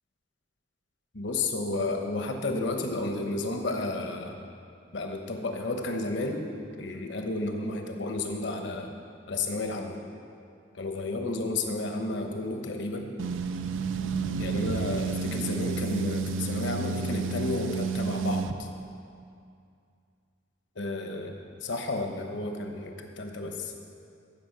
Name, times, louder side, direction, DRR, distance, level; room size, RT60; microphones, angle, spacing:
voice 1, 1.1-4.4 4.9-6.4 6.8-8.9 9.3-10.0 10.7-13.1 14.4-18.7 20.8-21.3 21.6-23.7, left 2 dB, 65° left, 4 dB, 1.1 m, -32 dB
sound 1, 13.2-18.5, right 5 dB, 85° right, 0.5 m, -30 dB
15.0 x 5.4 x 6.6 m, 2.4 s
head